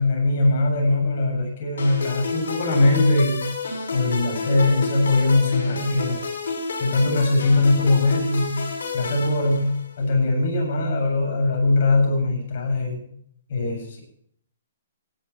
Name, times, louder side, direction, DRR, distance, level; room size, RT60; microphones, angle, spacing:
voice 1, 0.0-3.5 3.9-6.2 6.8-8.6 8.9-13.0 13.5-14.0, left 2 dB, 55° left, 1 dB, 7.9 m, -21 dB
sound 1, 1.8-10.0, left 3 dB, 80° left, 7.2 m, -30 dB
17.0 x 11.0 x 4.6 m, 0.64 s
hypercardioid pair, 145°, 0 cm